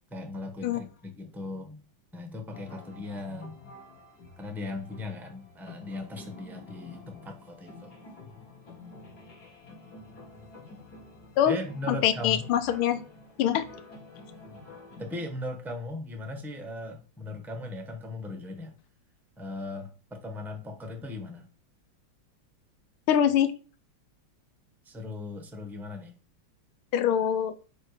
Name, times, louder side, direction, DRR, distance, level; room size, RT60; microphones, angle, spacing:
voice 1, 0.1-1.8 2.1-3.6 4.4-8.0 11.5-12.5 15.0-18.7 19.4-21.5 24.8-26.1, left 2 dB, ahead, 5 dB, 0.4 m, -38 dB
sound 1, 2.5-15.3, left 2 dB, 50° left, 2.6 m, -49 dB
voice 2, 11.9-13.0 13.4-13.7 23.1-23.5 26.9-27.5, left 9 dB, 90° left, 11 dB, 1.6 m, -24 dB
9.1 x 3.3 x 4.8 m, 0.37 s
omnidirectional pair, 2.3 m